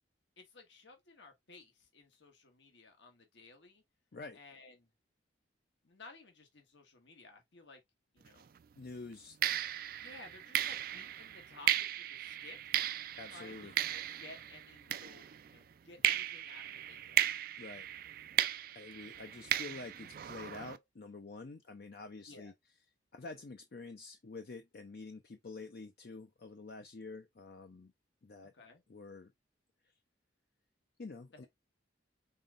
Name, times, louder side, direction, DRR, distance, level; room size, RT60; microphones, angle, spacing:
voice 1, 0.4-3.8 4.3-4.9 5.8-7.8 8.1-8.5 10.0-12.8 13.2-17.4 22.3-22.5 28.5-28.8 31.3-31.5, left 3 dB, 75° left, 1.4 m, -56 dB
sound 1, 8.3-8.5 9.4-15.6 16.0-20.8, right 12 dB, 50° right, 0.3 m, -36 dB
voice 2, 8.8-9.4 13.2-13.7 17.6-17.9 18.7-22.5 23.1-27.9 28.2-28.5 28.9-29.3 31.0-31.5, left 3 dB, 55° left, 0.5 m, -48 dB
5.6 x 3.8 x 2.4 m
head